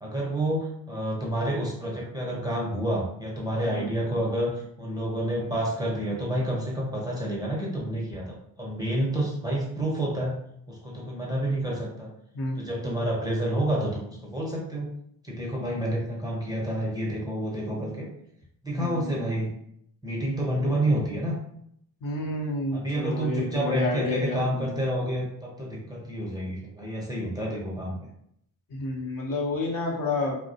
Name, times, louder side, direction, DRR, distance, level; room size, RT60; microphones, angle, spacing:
voice 1, 0.0-10.4 10.7-12.1 12.5-14.9 15.2-18.1 18.6-19.5 20.0-21.4 22.7-28.0, right 1 dB, 10° right, -4 dB, 0.6 m, -29 dB
voice 2, 18.7-19.4 22.0-24.7 28.7-30.4, left 2 dB, 45° left, -2 dB, 0.8 m, -30 dB
2.2 x 2.1 x 2.7 m, 0.71 s
supercardioid pair, 60°, 46 cm